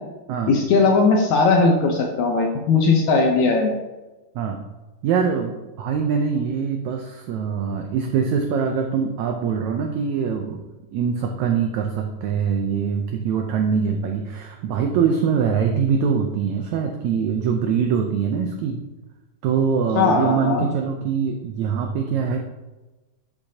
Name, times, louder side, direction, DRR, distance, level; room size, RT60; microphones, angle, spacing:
voice 1, 0.5-3.7 20.0-20.6, left 4 dB, 70° left, 2 dB, 1.9 m, -18 dB
voice 2, 5.0-10.6 10.9-18.8 19.4-22.4, right 6 dB, 85° right, 3 dB, 1.6 m, -23 dB
11.5 x 7.0 x 2.8 m, 1.1 s
omnidirectional pair, 4.1 m